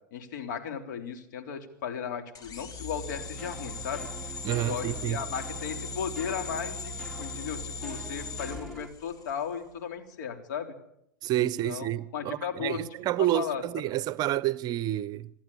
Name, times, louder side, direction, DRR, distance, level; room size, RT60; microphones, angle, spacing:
voice 1, 0.1-4.1 4.6-10.7 11.4-12.8 13.2-13.6, left 7 dB, 70° left, 3.6 m, -36 dB
sound 1, 2.4-9.5, left 3 dB, 35° left, 2.8 m, -39 dB
sound 2, 3.1-8.9, right 2 dB, ahead, 1.7 m, -46 dB
voice 2, 4.4-5.2 11.2-15.3, right 13 dB, 40° right, 0.7 m, -29 dB
26.5 x 11.5 x 10.0 m
hypercardioid pair, 100°, 10 cm